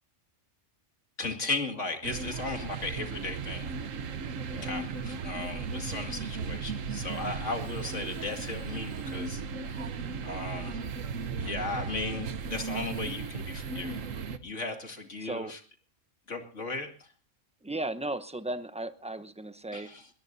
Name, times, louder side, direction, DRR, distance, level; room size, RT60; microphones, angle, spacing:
voice 1, 1.2-3.8 4.6-9.9 10.2-10.8 11.4-14.1 14.4-15.6 16.3-16.9 19.7-20.1, left 3 dB, 70° left, 4 dB, 2.8 m, -36 dB
sound 1, 2.0-14.4, right 5 dB, 85° right, 1.4 m, -36 dB
voice 2, 15.2-15.5 17.6-19.9, right 2 dB, 5° right, 11 dB, 0.7 m, -36 dB
21.0 x 21.0 x 2.7 m, 0.37 s
omnidirectional pair, 1.3 m